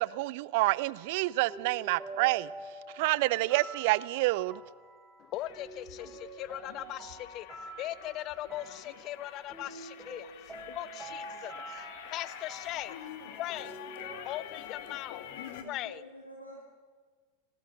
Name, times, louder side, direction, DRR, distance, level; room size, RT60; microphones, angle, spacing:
voice 1, 0.0-2.5 2.9-4.6, right 21 dB, 50° right, 21 dB, 0.6 m, -28 dB
sound 1, 0.9-14.2, right 2 dB, 10° right, 5.9 m, -47 dB
voice 2, 5.2-12.9 13.3-13.8 14.2-15.2 15.6-16.0, left 14 dB, 35° left, 18 dB, 0.9 m, -40 dB
sound 2, 5.3-15.6, left 10 dB, 50° left, 2.1 m, -47 dB
voice 3, 15.6-16.6, right 1 dB, 90° left, -1 dB, 2.7 m, -48 dB
25.5 x 18.5 x 7.0 m, 1.5 s
figure-of-eight pair, 90°, 0 cm